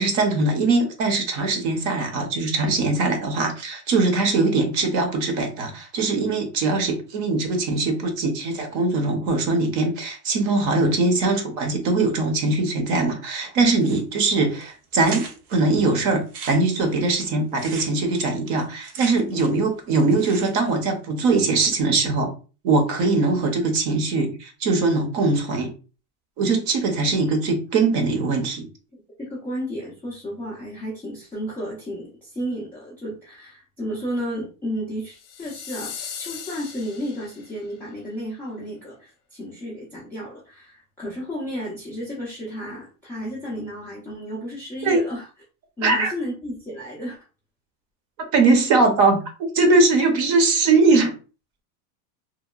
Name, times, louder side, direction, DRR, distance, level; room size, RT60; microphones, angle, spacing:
voice 1, 0.0-15.2 15.5-22.3 22.6-25.7 26.4-28.6 44.8-45.0 45.8-46.1 48.3-49.2 49.5-51.1, right 3 dB, 40° right, 5 dB, 0.7 m, -21 dB
sound 1, 13.8-14.3 14.6-14.7 15.0-15.6 16.1-19.7 19.9-20.8, right 5 dB, 75° right, 0.8 m, -39 dB
voice 2, 28.9-45.3 45.8-47.2, equal, 5° left, -10 dB, 0.3 m, -33 dB
sound 2, 35.1-37.6, left 8 dB, 40° left, 0.7 m, -38 dB
2.9 x 2.1 x 2.2 m, 0.34 s
supercardioid pair, 145°, 45 cm